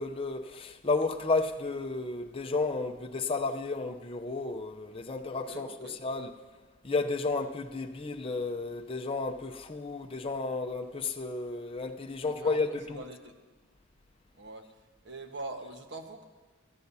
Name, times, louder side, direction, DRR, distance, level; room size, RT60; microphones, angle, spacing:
voice 1, 0.0-6.4 6.8-13.0, left 3 dB, 25° left, 0.6 m, -32 dB
voice 2, 5.5-6.0 12.3-12.6 12.9-13.4 14.3-14.7 15.0-16.2, right 2 dB, 60° right, 1.3 m, -43 dB
25.0 x 13.0 x 2.7 m
head